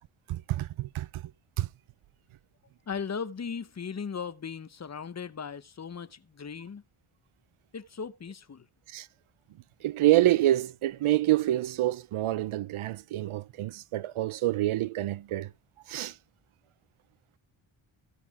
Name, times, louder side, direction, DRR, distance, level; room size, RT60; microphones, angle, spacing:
voice 1, 0.3-1.2 1.6-1.7 8.9-9.1 9.8-15.5 15.9-16.2, right 15 dB, 80° right, 0.7 m, -27 dB
voice 2, 2.9-6.8 7.7-8.6, left 6 dB, 35° left, 0.9 m, -37 dB
16.5 x 5.7 x 4.9 m
cardioid pair, 80°, 49 cm